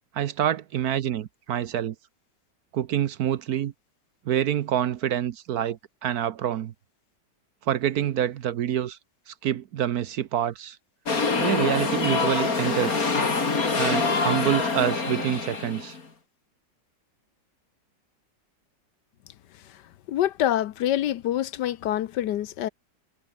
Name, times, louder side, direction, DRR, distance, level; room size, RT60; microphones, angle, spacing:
voice 1, 0.1-1.9 2.7-3.7 4.3-6.7 7.7-9.0 9.3-10.8 11.4-13.0 13.8-15.9, right 10 dB, 60° right, 1.2 m, -27 dB
sound 1, 11.1-16.0, left 4 dB, 50° left, 3.3 m, -25 dB
voice 2, 20.1-22.7, left 12 dB, 70° left, 1.3 m, -26 dB
omnidirectional pair, 2.0 m